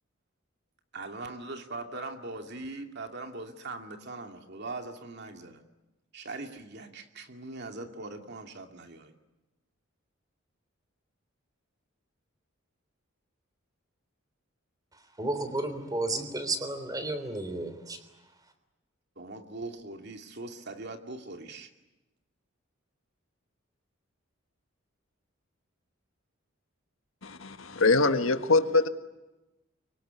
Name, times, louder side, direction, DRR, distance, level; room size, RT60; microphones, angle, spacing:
voice 1, 0.9-5.6 6.1-9.1 19.2-21.7, right 2 dB, 55° right, 5 dB, 2.5 m, -41 dB
voice 2, 15.2-18.0, right 2 dB, 20° right, 9 dB, 3.5 m, -32 dB
voice 3, 27.2-28.9, left 3 dB, 75° left, 9 dB, 1.6 m, -24 dB
24.5 x 24.0 x 9.6 m, 1.0 s
head